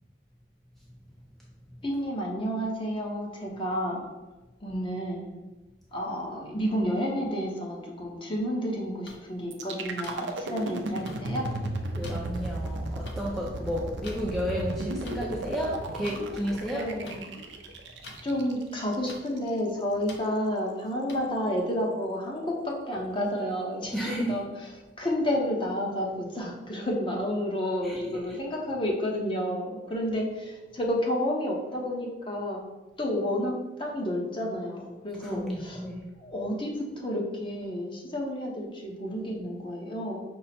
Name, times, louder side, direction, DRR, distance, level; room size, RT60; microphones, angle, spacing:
voice 1, 1.8-4.1 4.6-5.3 5.9-11.5 16.7-17.3 18.2-32.6 33.0-35.8 36.2-40.2, equal, 30° left, -1 dB, 0.8 m, -30 dB
sound 1, 9.1-9.2 10.0-10.2 11.1-11.2 12.0-12.1 13.1-13.2 14.0-14.2 15.0-15.2 16.0-16.2 17.0-17.2 18.0-18.2 19.1-19.2 20.1-20.2 21.1-21.2, left 3 dB, 65° left, 0.6 m, -44 dB
sound 2, 9.5-19.5, right 2 dB, 85° right, 0.5 m, -35 dB
voice 2, 11.9-16.9 18.3-18.4 23.9-24.4 27.8-28.2 35.2-36.0, equal, ahead, -4 dB, 0.5 m, -32 dB
5.4 x 2.1 x 4.1 m, 1.1 s
head